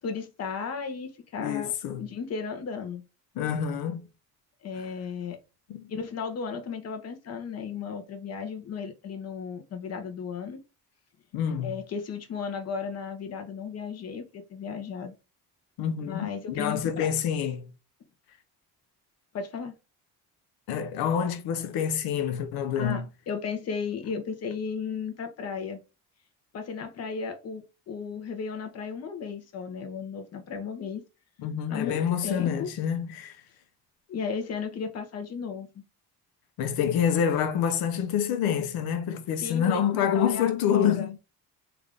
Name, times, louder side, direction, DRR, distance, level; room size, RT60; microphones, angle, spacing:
voice 1, 0.0-3.0 4.6-5.4 5.9-10.6 11.6-15.1 16.0-17.1 19.3-19.7 22.7-25.8 26.5-31.0 31.7-32.7 34.1-35.8 39.4-41.1, left 5 dB, 45° left, 0.8 m, -35 dB
voice 2, 1.4-2.1 3.4-4.0 5.7-5.9 11.3-11.8 15.8-17.7 20.7-23.1 31.4-33.4 36.6-41.2, left 8 dB, 80° left, 0.7 m, -27 dB
3.5 x 2.5 x 3.4 m
cardioid pair, 125°, 36 cm